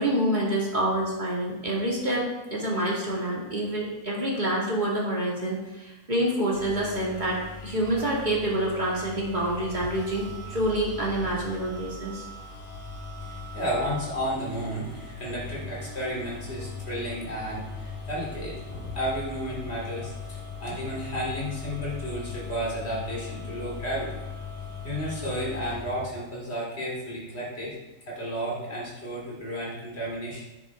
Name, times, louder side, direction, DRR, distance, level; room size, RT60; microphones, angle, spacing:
voice 1, 0.0-12.2, right 1 dB, 30° right, -4 dB, 2.6 m, -27 dB
sound 1, 6.5-26.1, left 4 dB, 65° left, 3.7 m, -39 dB
voice 2, 13.2-24.1 24.8-27.8 28.1-30.4, equal, 45° left, -5 dB, 3.7 m, -32 dB
9.7 x 9.4 x 3.7 m, 1.1 s
omnidirectional pair, 1.5 m